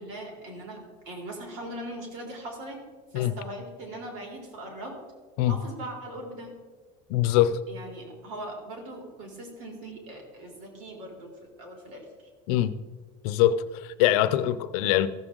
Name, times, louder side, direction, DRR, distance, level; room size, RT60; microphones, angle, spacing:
voice 1, 0.0-2.8 3.1-5.0 5.4-6.5 7.7-11.3 11.6-12.0, right 1 dB, 75° right, 3.3 m, -40 dB
voice 2, 7.1-7.6 12.5-12.8 13.2-15.1, left 12 dB, 85° left, 0.6 m, -23 dB
14.5 x 7.1 x 3.8 m
supercardioid pair, 110°, 19 cm